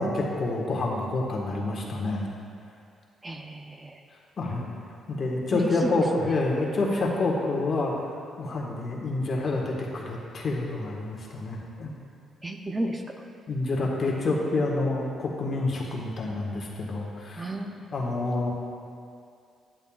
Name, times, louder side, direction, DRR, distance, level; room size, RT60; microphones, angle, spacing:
voice 1, 0.0-2.3 4.4-4.7 5.1-12.0 13.5-17.5 17.9-18.5, left 2 dB, 45° left, -2 dB, 1.5 m, -28 dB
voice 2, 3.2-4.0 5.5-6.3 12.4-13.2 17.4-17.8, right 1 dB, 20° right, 4 dB, 0.6 m, -33 dB
10.5 x 8.8 x 2.4 m, 2.4 s
cardioid pair, 90°, 0 cm